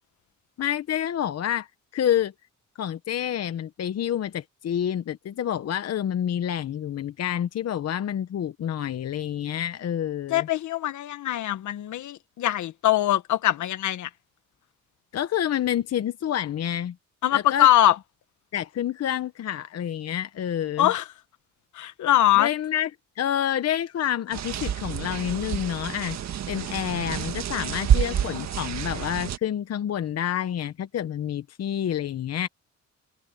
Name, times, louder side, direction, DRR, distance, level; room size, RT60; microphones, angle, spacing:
voice 1, 0.6-1.7 1.9-2.3 2.8-10.5 15.1-17.0 17.3-17.7 18.5-20.9 22.4-22.9 23.2-26.2 26.5-32.5, left 10 dB, 55° left, 1.0 m, -28 dB
voice 2, 10.3-14.1 17.2-18.0 20.8-21.1 21.7-22.5 27.5-27.8 28.1-28.5, left 13 dB, 75° left, 1.6 m, -22 dB
sound 1, 24.3-29.4, right 9 dB, 60° right, 1.8 m, -28 dB
cardioid pair, 90°, 30 cm